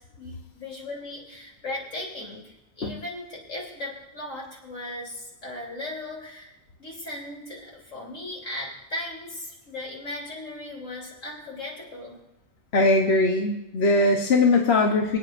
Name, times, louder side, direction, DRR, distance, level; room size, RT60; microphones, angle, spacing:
voice 1, 0.0-6.5 6.8-12.2, left 2 dB, 70° left, -3 dB, 3.6 m, -37 dB
voice 2, 12.7-15.2, left 2 dB, 55° left, 1 dB, 1.1 m, -20 dB
25.0 x 9.0 x 2.5 m, 0.90 s
omnidirectional pair, 1.4 m